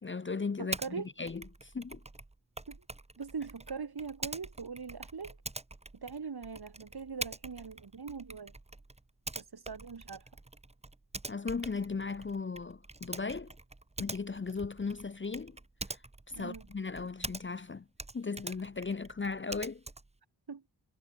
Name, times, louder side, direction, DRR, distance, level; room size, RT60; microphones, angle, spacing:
voice 1, 0.0-2.0 11.3-13.5 14.0-15.6 15.9-16.0 16.4-17.9 18.1-19.8, left 4 dB, 30° left, 0.5 m, -37 dB
voice 2, 0.6-1.1 2.7-2.8 3.2-5.4 5.9-8.5 9.4-10.2 16.3-16.6 20.5-20.6, right 5 dB, 65° right, 1.8 m, -41 dB
Typing, 0.7-0.9 1.3-17.7 17.9-20.2, right 2 dB, 15° right, 0.7 m, -45 dB
wide cardioid pair, 80°, 41 cm